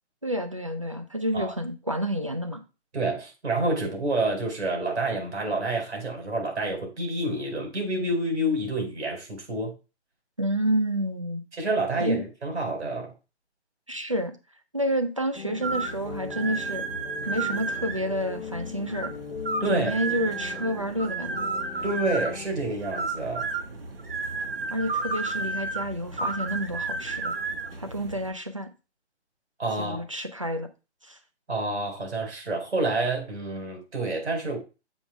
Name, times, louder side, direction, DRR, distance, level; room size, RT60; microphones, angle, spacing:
voice 1, 0.2-2.6 10.4-11.4 12.0-12.2 13.9-14.3 14.7-16.8 17.3-19.1 19.7-21.8 24.7-27.3 27.8-28.7 29.8-30.7 31.0-31.2, equal, 30° right, 7 dB, 0.5 m, -29 dB
voice 2, 2.9-9.7 11.5-13.1 19.6-20.0 21.8-23.5 29.6-30.0 31.5-34.6, right 2 dB, 75° right, 1 dB, 4.5 m, -28 dB
sound 1, 15.3-22.5, left 7 dB, 65° left, 1.4 m, -40 dB
sound 2, 15.6-28.3, right 3 dB, 55° right, 1.1 m, -32 dB
7.1 x 3.4 x 5.9 m, 0.30 s
hypercardioid pair, 180°, 34 cm